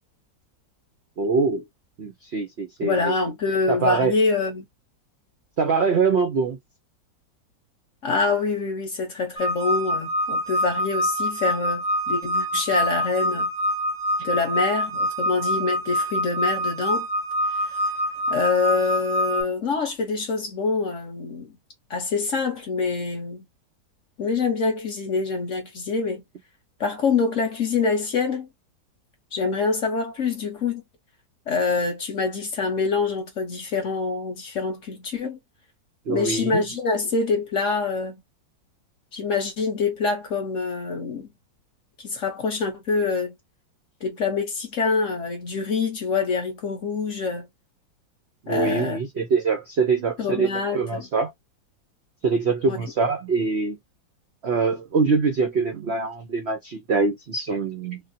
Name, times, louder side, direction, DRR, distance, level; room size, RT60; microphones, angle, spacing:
voice 1, 1.2-1.6 2.0-3.1 3.7-4.1 5.6-6.6 36.1-36.6 48.4-50.5 50.7-51.3 52.2-53.8 54.4-58.0, right 4 dB, 80° right, 0.5 m, -23 dB
voice 2, 2.8-4.6 8.0-13.5 14.2-17.1 18.3-21.5 21.9-23.4 24.2-26.2 26.8-28.5 29.3-30.8 31.5-35.4 36.1-38.2 39.1-41.3 42.0-43.3 44.0-47.5 48.5-49.0 50.2-51.1 52.7-52.8, left 4 dB, 50° left, 1.0 m, -25 dB
sound 1, 9.4-19.4, equal, 30° left, 1.0 m, -25 dB
3.5 x 2.1 x 2.7 m
omnidirectional pair, 2.0 m